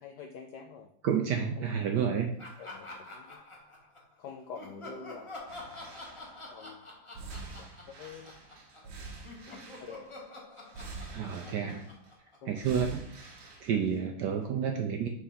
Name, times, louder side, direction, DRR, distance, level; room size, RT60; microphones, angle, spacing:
voice 1, 0.0-0.9 1.6-3.4 4.2-5.3 6.5-6.9 7.5-8.3 8.8-8.9 9.5-10.1 12.4-12.7, left 6 dB, 80° left, 4 dB, 0.9 m, -47 dB
voice 2, 1.0-2.3 11.1-11.8 12.5-13.1 13.6-15.1, right 7 dB, 75° right, 3 dB, 1.0 m, -30 dB
Laughter, 2.4-4.1 4.5-8.9 9.2-12.8, left 2 dB, 20° left, 0.8 m, -47 dB
sound 1, 5.5-6.5 7.1-10.2 10.7-12.1 12.6-14.0 14.4-14.5, right 3 dB, 90° right, 2.0 m, -46 dB
4.7 x 3.7 x 5.6 m, 0.65 s
omnidirectional pair, 2.4 m